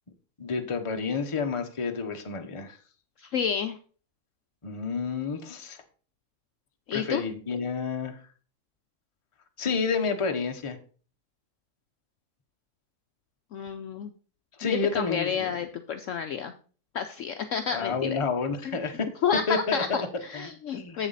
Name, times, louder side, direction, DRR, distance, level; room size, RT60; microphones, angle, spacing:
voice 1, 0.4-2.8 4.6-5.8 6.9-8.2 9.6-10.8 14.6-15.6 17.7-19.1 19.5-20.1 20.3-21.0, left 5 dB, 25° left, 5 dB, 0.8 m, -30 dB
voice 2, 3.2-3.8 6.9-7.2 13.5-14.1 14.6-16.5 16.9-18.2 18.6-18.8 19.2-21.1, left 7 dB, 65° left, 7 dB, 0.8 m, -30 dB
7.7 x 7.2 x 4.0 m, 0.39 s
omnidirectional pair, 1.7 m